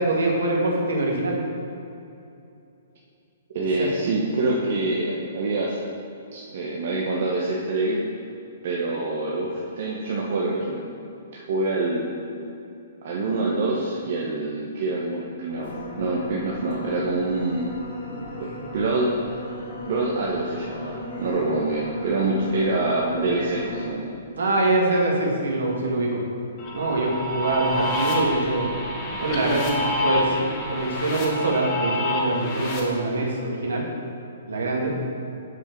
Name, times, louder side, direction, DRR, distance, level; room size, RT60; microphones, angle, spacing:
voice 1, 0.0-1.4 3.8-3.9 24.4-26.2 26.7-28.7 29.2-30.4 30.7-33.8 34.5-34.9, right 2 dB, 75° right, -1 dB, 1.9 m, -24 dB
voice 2, 3.5-5.8 6.3-8.0 8.6-10.8 11.3-12.1 13.0-17.8 18.4-19.2 19.9-24.1, right 2 dB, 55° right, -3 dB, 1.0 m, -26 dB
sound 1, 15.5-23.9, left 1 dB, 65° left, 2.0 m, -36 dB
sound 2, 26.6-32.8, left 1 dB, 40° left, 1.6 m, -28 dB
7.4 x 6.7 x 4.6 m, 2.7 s
hypercardioid pair, 125°, 0 cm